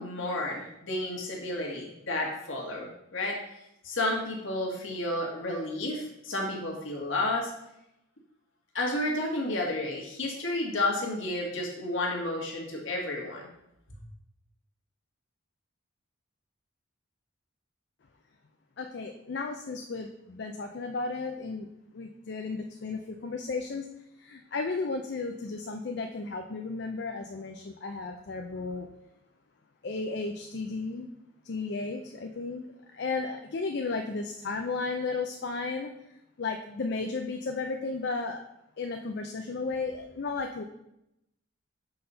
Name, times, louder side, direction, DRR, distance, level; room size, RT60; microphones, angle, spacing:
voice 1, 0.0-3.4 3.8-7.5 8.7-13.5, left 2 dB, 70° left, -1 dB, 1.6 m, -31 dB
voice 2, 18.8-21.7 21.9-23.9 24.2-28.9 29.8-31.1 31.4-35.9 36.4-38.4 38.8-40.6, left 3 dB, 55° left, 4 dB, 0.4 m, -34 dB
5.6 x 4.1 x 5.5 m, 0.83 s
head